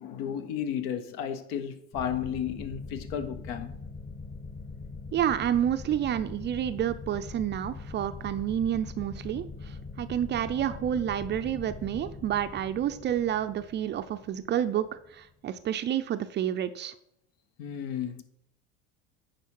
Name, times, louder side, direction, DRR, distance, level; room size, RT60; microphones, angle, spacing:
voice 1, 0.0-3.8 17.6-18.2, left 9 dB, 60° left, 1.1 m, -33 dB
sound 1, 1.9-15.2, left 4 dB, 25° left, 1.5 m, -42 dB
voice 2, 5.1-16.9, right 10 dB, 30° right, 0.5 m, -29 dB
9.2 x 4.9 x 4.7 m
supercardioid pair, 105°, 35 cm